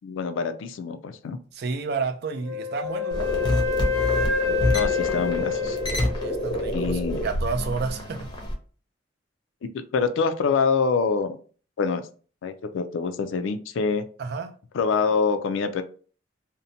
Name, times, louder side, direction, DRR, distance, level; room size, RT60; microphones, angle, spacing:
voice 1, 0.0-1.4 4.7-5.8 6.7-7.2 9.7-11.4 11.8-12.1 12.4-14.0 14.7-15.8, left 5 dB, 85° left, 0.4 m, -25 dB
voice 2, 1.5-3.3 6.2-8.3 14.2-14.6, right 4 dB, 55° right, 0.4 m, -30 dB
Wind instrument woodwind instrument, 2.4-6.6, left 6 dB, 90° right, 1.0 m, -27 dB
sound 1, 3.1-8.5, equal, 25° left, 0.6 m, -27 dB
2.6 x 2.1 x 2.6 m
head